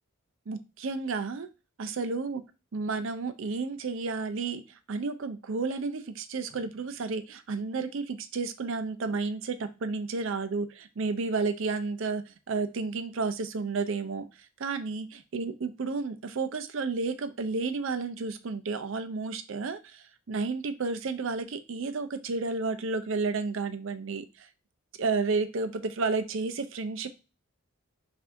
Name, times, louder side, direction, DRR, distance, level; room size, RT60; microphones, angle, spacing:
voice 1, 0.5-1.5 1.8-2.4 2.7-4.6 4.9-14.2 14.6-24.5 25.0-27.1, right 4 dB, 60° right, 10 dB, 0.5 m, -31 dB
5.5 x 2.6 x 2.5 m, 0.30 s
head